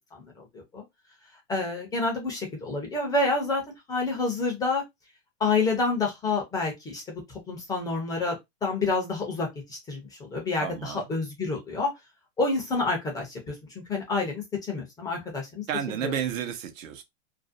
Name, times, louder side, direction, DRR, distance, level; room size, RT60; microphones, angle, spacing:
voice 1, 1.5-3.6 3.9-4.8 5.4-7.0 7.5-11.9 12.4-13.5 13.9-15.7 16.0-16.1, left 3 dB, 10° left, 0.4 m, -28 dB
voice 2, 10.6-11.1 15.7-17.0, right 8 dB, 90° right, 0.8 m, -31 dB
2.5 x 2.0 x 2.5 m
supercardioid pair, 140°, 38 cm